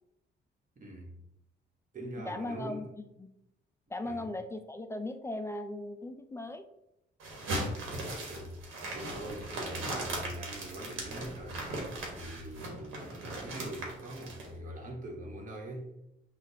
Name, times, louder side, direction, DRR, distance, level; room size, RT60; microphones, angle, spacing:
voice 1, 0.8-1.1 1.9-2.9 4.0-4.3 8.1-8.6 8.9-11.6 12.1-15.9, right 1 dB, 40° right, 0 dB, 1.2 m, -42 dB
voice 2, 2.3-2.9 3.2-3.3 3.9-6.6, left 2 dB, 15° left, 8 dB, 0.4 m, -38 dB
sound 1, 7.2-14.5, right 1 dB, 85° right, 1.3 m, -38 dB
6.4 x 2.4 x 2.7 m, 0.85 s
cardioid pair, 90°, 20 cm